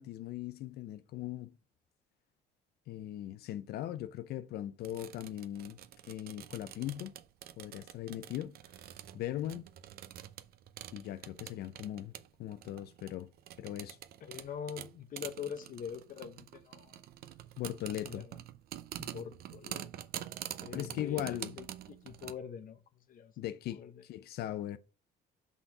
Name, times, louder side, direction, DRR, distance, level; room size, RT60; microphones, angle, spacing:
voice 1, 0.0-1.6 2.9-5.8 6.1-7.1 7.6-8.5 9.1-9.6 10.9-12.1 12.4-13.3 13.6-14.0 17.6-18.3 20.7-21.6 23.4-24.8, left 12 dB, 70° left, 0.5 m, -39 dB
sound 1, 4.8-22.3, right 12 dB, 65° right, 0.6 m, -47 dB
voice 2, 14.2-17.0 17.8-18.4 19.0-19.9 20.4-23.3 23.7-24.0, left 8 dB, 55° left, 0.9 m, -44 dB
5.7 x 4.1 x 5.9 m
cardioid pair, 110°, 17 cm